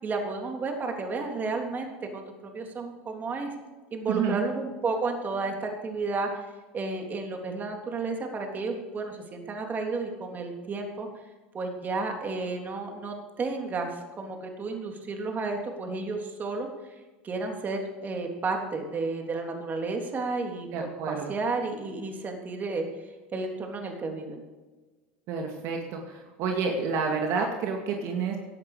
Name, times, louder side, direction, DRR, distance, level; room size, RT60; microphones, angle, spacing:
voice 1, 0.0-3.5 3.9-6.4 6.7-11.1 11.5-16.9 17.2-22.8 23.3-24.4, right 3 dB, 30° right, 3 dB, 3.4 m, -32 dB
voice 2, 4.1-4.4 20.7-21.3 25.3-28.4, right 5 dB, 60° right, 2 dB, 2.3 m, -29 dB
17.0 x 11.0 x 5.1 m, 1.3 s
supercardioid pair, 95°, 6 cm